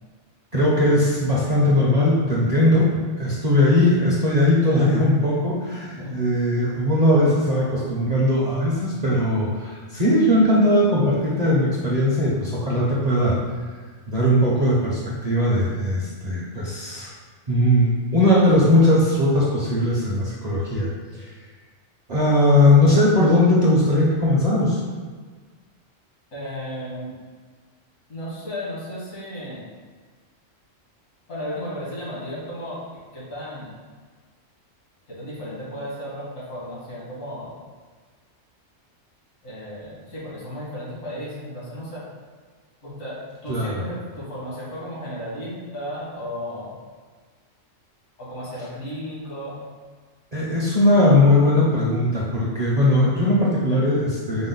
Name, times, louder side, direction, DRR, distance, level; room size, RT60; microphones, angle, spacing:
voice 1, 0.5-13.4 14.1-17.1 17.5-20.9 21.2-21.3 22.1-24.8 43.5-43.7 50.3-54.5, left 1 dB, 45° right, -6 dB, 0.6 m, -19 dB
voice 2, 26.3-27.2 28.1-29.7 31.3-32.8 33.1-33.7 35.1-37.6 39.4-42.0 42.8-46.7 48.2-49.6, equal, 80° left, -8 dB, 2.0 m, -34 dB
5.0 x 2.1 x 3.8 m, 1.5 s
omnidirectional pair, 1.4 m